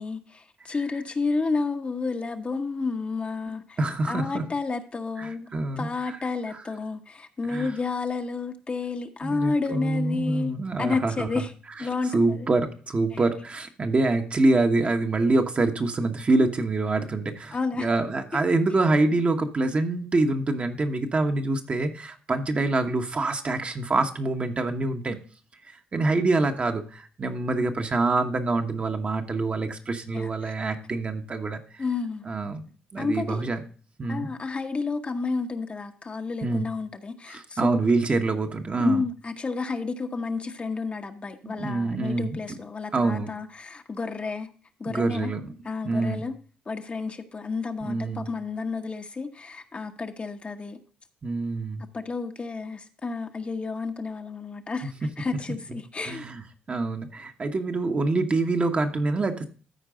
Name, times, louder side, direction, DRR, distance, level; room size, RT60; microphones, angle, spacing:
voice 1, 0.0-3.8 4.1-5.5 5.8-11.5 11.8-12.5 13.1-13.2 17.5-17.9 30.1-30.5 31.8-32.3 33.0-33.5 34.1-37.8 38.8-44.5 44.8-45.3 45.6-46.3 46.7-50.8 51.9-56.3, left 4 dB, 35° left, 0.9 m, -31 dB
voice 2, 3.8-4.4 5.2-6.2 7.5-7.7 9.2-11.4 12.1-25.2 25.9-31.8 32.3-32.6 32.9-33.6 34.0-34.3 36.4-36.6 37.3-39.0 41.4-42.6 42.9-43.3 44.8-45.5 45.8-46.2 47.8-48.3 51.2-51.8 54.8-54.9 55.7-55.8 56.0-56.4 56.7-59.4, right 3 dB, 35° right, 1.2 m, -26 dB
13.5 x 4.6 x 3.8 m
supercardioid pair, 65°, 4 cm